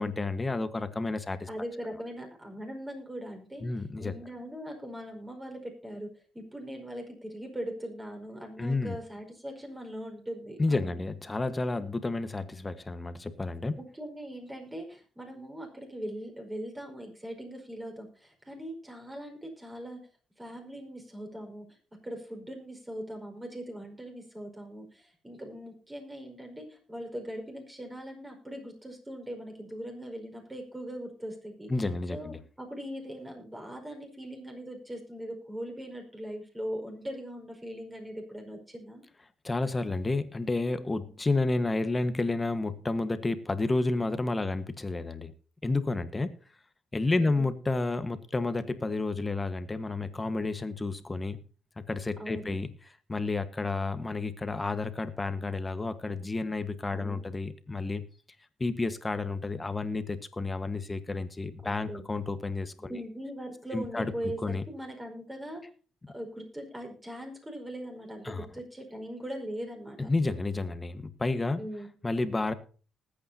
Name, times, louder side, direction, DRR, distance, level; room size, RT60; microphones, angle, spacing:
voice 1, 0.0-1.5 3.6-4.1 8.6-9.0 10.6-13.8 31.7-32.4 39.4-45.3 45.6-46.3 46.9-51.4 51.9-52.7 53.1-58.0 58.6-63.0 63.7-64.1 64.4-64.6 68.2-68.5 70.0-71.6 72.0-72.5, left 3 dB, 20° left, 11 dB, 1.4 m, -30 dB
voice 2, 1.5-3.7 4.0-11.0 13.8-20.0 20.4-31.7 32.1-39.0 47.2-47.4 52.2-52.5 56.9-57.2 61.6-62.0 62.8-65.6 66.1-70.1 71.6-71.9, equal, 15° right, 2 dB, 5.1 m, -40 dB
20.0 x 8.8 x 2.8 m, 0.40 s
cardioid pair, 90°, 0 cm